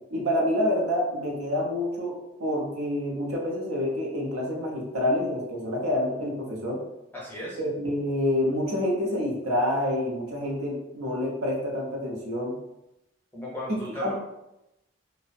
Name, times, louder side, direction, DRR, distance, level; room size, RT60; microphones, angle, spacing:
voice 1, 0.1-6.8 7.6-12.6 14.0-14.1, left 1 dB, 85° right, -2 dB, 0.6 m, -27 dB
voice 2, 7.1-7.6 13.3-14.1, left 1 dB, 10° left, -5 dB, 0.5 m, -36 dB
2.5 x 2.0 x 2.5 m, 0.90 s
head